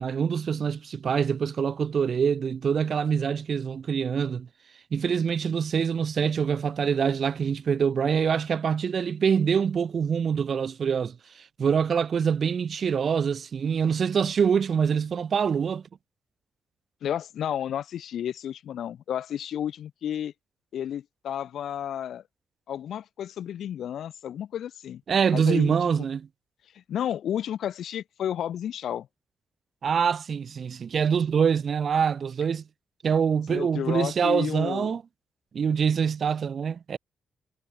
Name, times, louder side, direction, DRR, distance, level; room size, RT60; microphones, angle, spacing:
voice 1, 0.0-4.5 4.9-15.8 25.1-26.3 29.8-32.6 33.0-35.0 35.5-37.0, right 7 dB, 45° right, 2.1 m, -25 dB
voice 2, 17.0-20.3 20.7-22.2 22.7-25.0 25.3-25.9 26.7-29.1 33.5-35.0, left 10 dB, 70° left, 2.5 m, -32 dB
wide cardioid pair, 160°, 0 cm